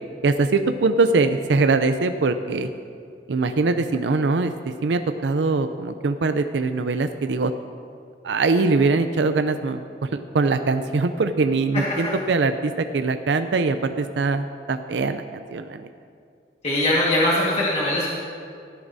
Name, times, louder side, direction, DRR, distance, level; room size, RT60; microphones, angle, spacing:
voice 1, 0.2-2.7 3.3-7.5 8.2-15.9, right 3 dB, 85° right, 9 dB, 0.5 m, -22 dB
voice 2, 16.6-18.1, left 1 dB, 35° left, -6 dB, 1.7 m, -21 dB
17.0 x 14.0 x 2.7 m, 2.4 s
head